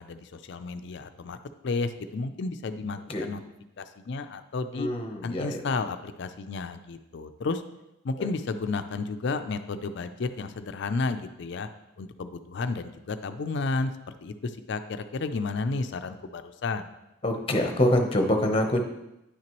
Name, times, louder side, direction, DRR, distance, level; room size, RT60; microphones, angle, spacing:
voice 1, 0.0-3.4 3.8-4.9 5.2-7.6 8.0-11.7 12.0-13.9 14.2-16.9, left 3 dB, 55° left, 10 dB, 0.4 m, -32 dB
voice 2, 4.7-5.6 8.2-8.3 17.2-18.8, left 1 dB, 25° left, 4 dB, 0.8 m, -25 dB
9.8 x 5.8 x 3.0 m, 0.91 s
head